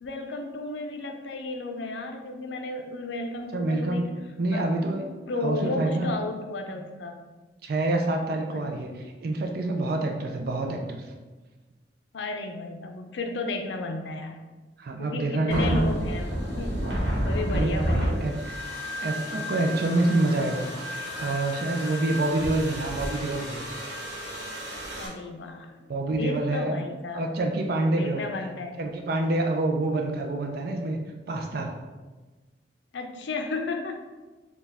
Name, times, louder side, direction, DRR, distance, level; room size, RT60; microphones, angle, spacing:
voice 1, 0.0-4.1 4.5-4.7 5.3-7.2 8.5-8.6 12.1-14.4 15.0-18.3 25.0-25.9 26.2-27.2 27.9-28.7 32.9-34.1, left 2 dB, 80° left, 4 dB, 0.5 m, -33 dB
voice 2, 3.5-4.1 4.4-5.1 5.4-6.1 7.6-11.1 14.8-15.9 17.5-17.9 18.2-18.5 19.0-20.7 21.2-23.7 25.9-26.8 27.1-28.3 28.8-31.0 31.3-31.7, right 2 dB, 55° right, 3 dB, 0.4 m, -27 dB
sound 1, 15.5-25.1, equal, 80° right, 1.1 m, -31 dB
4.4 x 2.3 x 3.4 m, 1.3 s
head